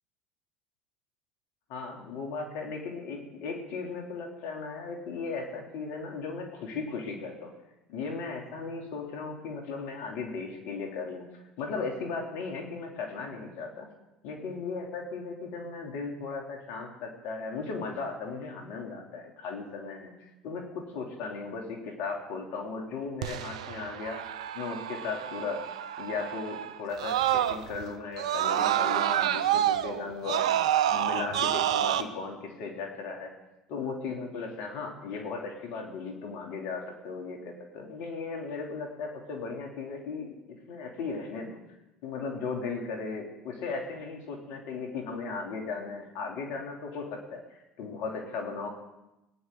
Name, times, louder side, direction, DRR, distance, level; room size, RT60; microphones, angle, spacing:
voice 1, 1.7-7.5 7.9-13.9 14.2-20.1 20.4-24.2 24.5-25.7 26.0-30.5 30.9-33.3 33.7-41.6 42.0-48.7, left 4 dB, 65° left, 1 dB, 2.9 m, -36 dB
Screaming, 23.2-27.8 28.2-32.0, right 11 dB, 85° right, 0.7 m, -28 dB
20.5 x 10.0 x 3.8 m, 0.94 s
hypercardioid pair, 75°, 3 cm